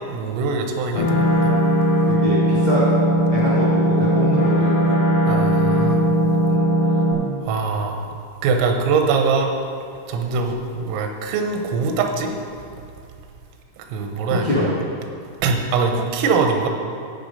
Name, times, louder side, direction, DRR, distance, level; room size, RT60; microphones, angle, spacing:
voice 1, 0.1-1.5 5.3-6.0 7.4-8.1 8.4-9.5 10.1-12.3 13.9-14.6 15.4-16.7, right 4 dB, 85° right, 4 dB, 3.6 m, -22 dB
sound 1, 1.0-7.1, equal, 65° left, 3.6 m, -18 dB
voice 2, 2.1-2.8 3.3-4.9 6.5-6.7 14.3-14.7, left 1 dB, 45° left, -9 dB, 1.4 m, -24 dB
15.5 x 5.2 x 5.3 m, 2.3 s
omnidirectional pair, 5.8 m